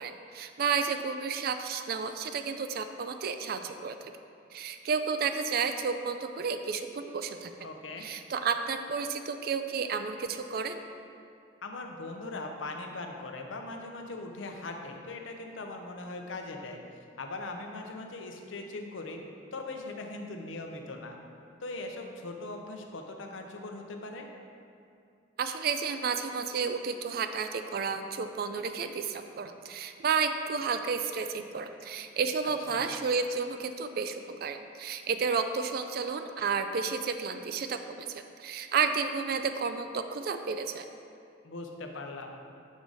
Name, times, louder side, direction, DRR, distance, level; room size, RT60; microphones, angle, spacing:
voice 1, 0.0-4.0 4.5-7.5 8.0-10.8 25.4-40.8, right 5 dB, 50° right, 8 dB, 0.3 m, -31 dB
voice 2, 7.6-8.1 11.6-16.8 17.2-19.2 19.5-21.2 21.6-24.3 32.7-32.9 41.4-42.4, left 2 dB, 85° left, 3 dB, 0.7 m, -40 dB
6.2 x 4.0 x 4.8 m, 2.4 s
head